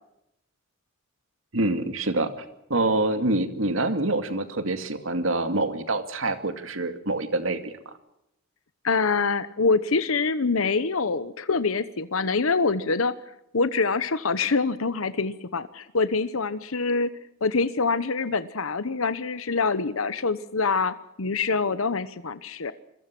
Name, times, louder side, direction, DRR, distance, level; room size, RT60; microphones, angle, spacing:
voice 1, 1.5-2.4 2.7-7.9, right 2 dB, 70° right, 9 dB, 2.5 m, -26 dB
voice 2, 8.8-13.1 13.5-17.1 17.4-22.7, left 4 dB, 85° left, 14 dB, 1.0 m, -25 dB
27.5 x 22.0 x 6.1 m, 0.83 s
head